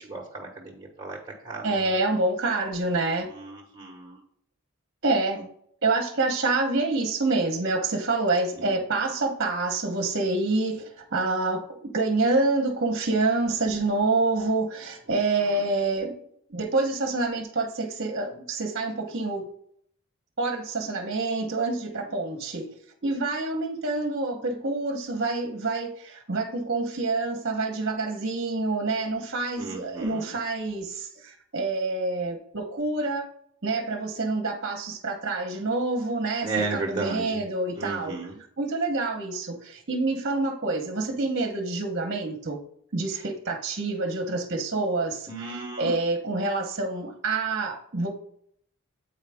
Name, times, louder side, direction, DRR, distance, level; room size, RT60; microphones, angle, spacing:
voice 1, 0.0-2.0 3.3-4.2 5.3-5.4 8.6-8.8 15.1-15.6 29.6-30.4 36.4-37.4 37.7-38.4 43.1-43.3 45.3-46.0, right 3 dB, 25° right, -2 dB, 1.2 m, -35 dB
voice 2, 1.6-3.3 5.0-5.4 5.8-16.2 16.5-19.5 20.4-22.7 23.0-33.3 33.6-36.5 36.9-38.2 38.6-42.6 42.9-45.3 45.8-48.1, right 3 dB, 50° right, 4 dB, 1.1 m, -27 dB
8.2 x 4.8 x 3.5 m, 0.64 s
head